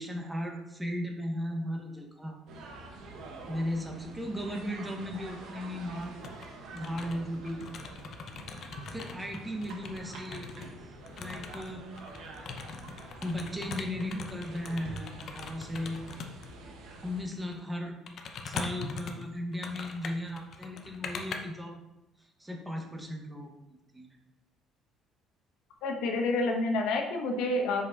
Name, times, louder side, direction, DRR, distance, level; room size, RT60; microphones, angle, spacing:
voice 1, 0.0-2.4 3.5-6.2 6.7-7.6 8.8-10.7 11.2-11.8 13.2-16.0 17.0-18.0 18.4-21.7 22.4-24.1, left 1 dB, 5° right, 1 dB, 1.1 m, -36 dB
sound 1, 2.5-17.2, right 2 dB, 65° right, 1.2 m, -47 dB
sound 2, 6.0-6.5 6.8-10.7 11.1-16.5 17.3-17.6 18.1-21.4, left 5 dB, 45° left, 0.7 m, -41 dB
voice 2, 25.8-27.9, left 2 dB, 75° left, 2 dB, 0.9 m, -28 dB
5.9 x 5.0 x 4.0 m, 0.94 s
cardioid pair, 145°, 0 cm